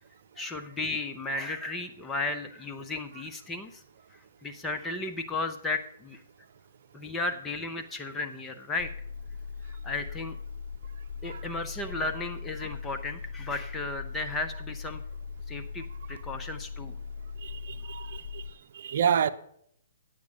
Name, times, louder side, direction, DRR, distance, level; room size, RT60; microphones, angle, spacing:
voice 1, 0.4-3.8 4.4-6.2 6.9-8.9 9.7-10.4 11.2-15.0 15.5-16.9, left 3 dB, 10° left, 0.8 m, -34 dB
sound 1, 8.8-18.5, left 5 dB, 70° left, 0.5 m, -40 dB
voice 2, 17.4-18.5 18.7-19.3, right 8 dB, 60° right, 0.7 m, -29 dB
10.5 x 7.4 x 6.4 m
hypercardioid pair, 135°, 0 cm